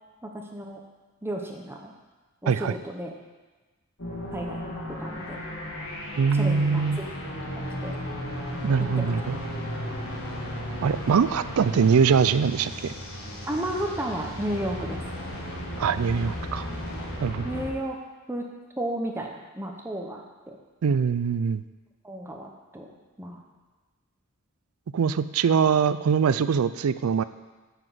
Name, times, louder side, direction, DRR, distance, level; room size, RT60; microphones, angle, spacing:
voice 1, 0.2-0.8 1.2-1.9 2.4-3.1 4.3-5.4 6.3-6.8 7.8-7.9 8.8-9.2 13.5-15.0 17.4-18.0 18.3-18.5 18.8-20.6 22.0-22.9 23.2-23.4, right 1 dB, 10° right, 1 dB, 0.8 m, -33 dB
sound 1, 4.0-17.7, equal, 65° left, 2.0 m, -35 dB
voice 2, 6.2-7.0 8.6-9.4 10.8-13.0 15.8-16.7 17.2-17.5 20.8-21.6 24.9-27.2, right 6 dB, 80° right, 14 dB, 0.4 m, -23 dB
6.9 x 6.1 x 7.6 m, 1.2 s
head